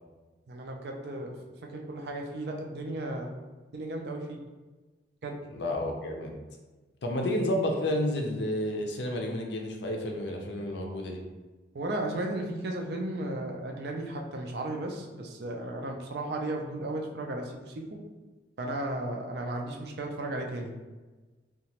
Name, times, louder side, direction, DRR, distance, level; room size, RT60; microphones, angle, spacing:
voice 1, 0.5-1.3 1.7-3.3 3.7-4.4 5.2-5.4 11.7-18.0 18.6-20.7, right 1 dB, 65° right, 1 dB, 0.4 m, -35 dB
voice 2, 5.5-6.3 7.0-11.2, left 1 dB, 75° left, 2 dB, 0.5 m, -30 dB
2.8 x 2.2 x 2.8 m, 1.2 s
head